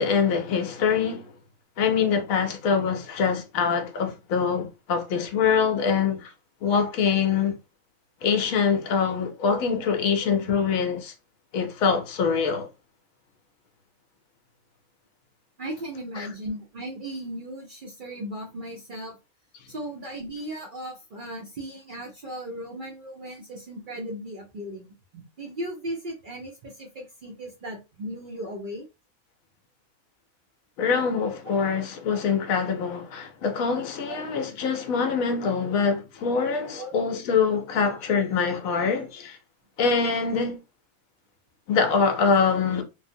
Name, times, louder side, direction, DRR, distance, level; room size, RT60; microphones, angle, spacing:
voice 1, 0.0-1.3 1.8-6.3 6.6-7.6 8.2-11.1 11.5-12.7 16.1-16.3 30.8-39.4 39.8-40.6 41.7-42.8, left 6 dB, 80° left, 1.0 m, -24 dB
voice 2, 15.6-19.2 19.7-24.9 25.1-28.9 34.1-34.2 35.4-35.5 36.7-36.9 37.7-37.9, right 1 dB, 55° right, 0.6 m, -36 dB
3.1 x 2.0 x 2.6 m
omnidirectional pair, 1.4 m